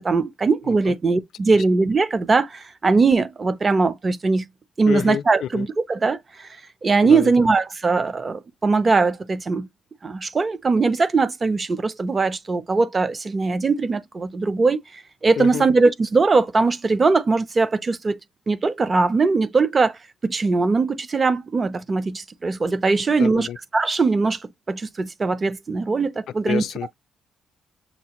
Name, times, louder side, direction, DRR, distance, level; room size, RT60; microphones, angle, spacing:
voice 1, 0.0-4.5 4.8-6.5 6.8-9.7 10.0-14.8 15.2-18.2 18.5-20.0 20.2-26.6, right 4 dB, 25° right, 0.4 m, -20 dB
voice 2, 4.9-5.7 7.0-7.5 15.4-15.7 23.2-23.6 26.4-26.9, left 9 dB, 65° left, 0.3 m, -29 dB
6.5 x 2.4 x 2.9 m
cardioid pair, 160°, 0 cm